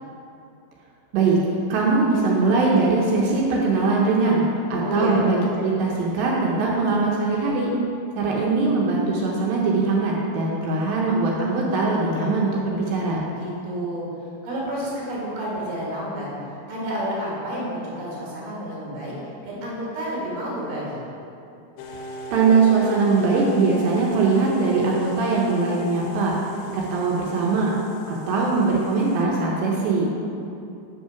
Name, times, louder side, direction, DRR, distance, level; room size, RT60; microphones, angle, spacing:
voice 1, 1.7-4.4 4.7-7.7 8.2-13.2 22.3-26.4 26.7-27.7 28.1-30.1, right 3 dB, 80° right, -3 dB, 2.6 m, -21 dB
voice 2, 4.8-5.2 13.2-14.1 14.4-16.3 16.7-19.1 19.4-21.0, equal, 45° right, -6 dB, 2.1 m, -30 dB
sound 1, 21.8-29.2, equal, 90° left, 2.6 m, -38 dB
5.6 x 5.3 x 5.7 m, 2.7 s
omnidirectional pair, 4.3 m